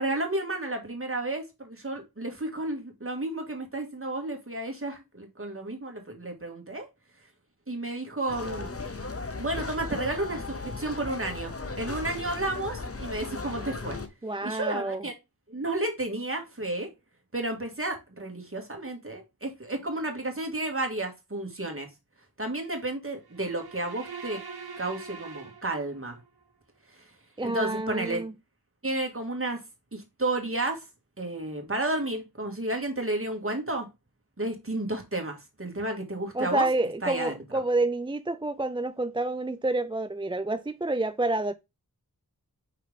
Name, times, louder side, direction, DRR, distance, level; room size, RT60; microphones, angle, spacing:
voice 1, 0.0-6.9 7.7-8.7 9.4-14.0 14.4-15.1 15.5-16.9 17.3-21.9 22.4-24.4 24.8-26.2 26.9-27.1 27.4-28.2 28.8-29.6 29.9-30.8 31.2-33.9 34.4-36.7 37.0-37.3, right 2 dB, 35° right, 2.3 m, -32 dB
sound 1, 8.3-14.1, left 3 dB, 40° left, 1.0 m, -36 dB
voice 2, 14.2-15.0 27.4-28.3 36.3-41.5, right 2 dB, 15° right, 0.3 m, -28 dB
sound 2, 23.2-26.3, right 5 dB, 85° right, 1.0 m, -43 dB
5.9 x 4.7 x 3.6 m
wide cardioid pair, 50°, 37 cm